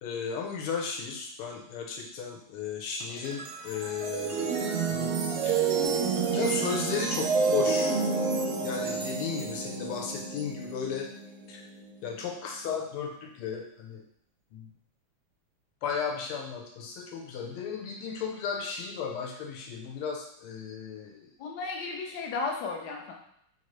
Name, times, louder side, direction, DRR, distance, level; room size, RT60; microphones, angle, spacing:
voice 1, 0.0-5.1 5.4-5.7 6.3-8.0 8.6-11.1 11.5-11.6 12.0-14.0 14.5-14.6 15.8-21.3, left 6 dB, 85° left, 0 dB, 1.6 m, -35 dB
sound 1, 3.0-12.3, right 5 dB, 85° right, 1.5 m, -30 dB
voice 2, 21.4-23.1, left 4 dB, 65° left, 0 dB, 1.1 m, -34 dB
4.4 x 2.6 x 3.1 m, 0.70 s
omnidirectional pair, 2.4 m